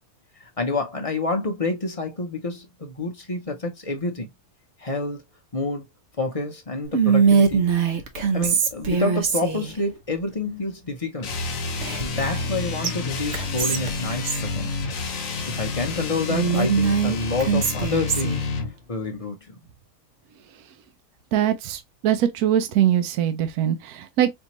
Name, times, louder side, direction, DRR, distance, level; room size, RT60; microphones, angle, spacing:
voice 1, 0.4-4.3 4.8-5.2 5.5-5.9 6.2-7.7 8.3-11.3 12.0-14.8 15.5-18.5 18.9-19.6, left 3 dB, 35° left, 0.6 m, -28 dB
Whispering, 6.9-9.8 11.8-12.5 12.8-12.9 13.3-14.5 16.3-18.4, right 6 dB, 55° right, 1.1 m, -22 dB
sound 1, 11.2-18.7, left 4 dB, 65° left, 1.2 m, -29 dB
voice 2, 21.3-24.3, right 10 dB, 80° right, 1.1 m, -22 dB
4.4 x 2.9 x 2.9 m
omnidirectional pair, 1.6 m